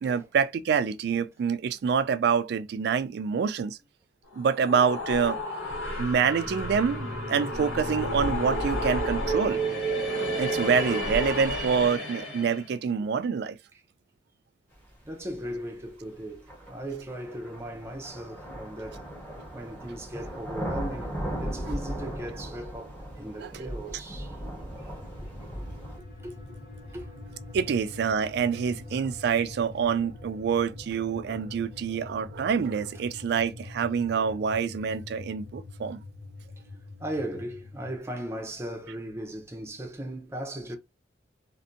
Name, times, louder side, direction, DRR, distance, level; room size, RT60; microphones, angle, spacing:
voice 1, 0.0-3.8 4.4-5.4 6.0-9.6 10.4-13.6 23.4-23.7 27.5-36.0, right 6 dB, 60° right, 0.3 m, -26 dB
sound 1, 4.3-12.6, right 1 dB, 85° left, 1.4 m, -30 dB
voice 2, 15.0-19.1 19.5-24.4 25.2-25.7 26.2-26.3 26.9-27.4 36.7-40.8, right 1 dB, 15° right, 0.6 m, -38 dB
sound 2, 15.4-15.5 16.5-26.0, right 1 dB, 10° left, 0.9 m, -37 dB
sound 3, 24.7-38.0, left 2 dB, 50° left, 0.7 m, -44 dB
2.6 x 2.5 x 2.5 m
head